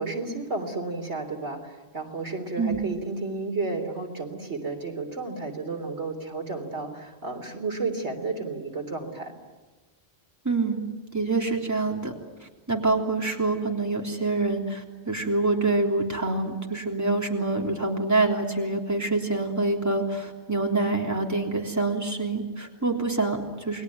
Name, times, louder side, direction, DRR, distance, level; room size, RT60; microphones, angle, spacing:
voice 1, 0.0-9.3, right 3 dB, 85° right, 4 dB, 3.7 m, -32 dB
voice 2, 10.4-10.8 11.1-12.1 12.4-23.8, right 3 dB, 15° right, 1 dB, 3.2 m, -26 dB
29.0 x 21.0 x 9.5 m, 1.3 s
omnidirectional pair, 1.1 m